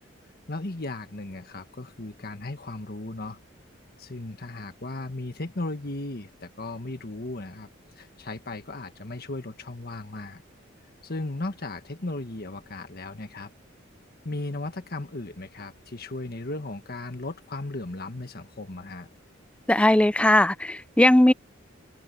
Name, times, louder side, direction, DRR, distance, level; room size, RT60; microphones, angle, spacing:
voice 1, 0.5-3.4 4.0-7.7 8.0-10.4 11.0-13.5 14.2-19.1, left 2 dB, 50° left, 1.6 m, -36 dB
voice 2, 19.7-21.3, left 1 dB, 5° left, 0.4 m, -18 dB
head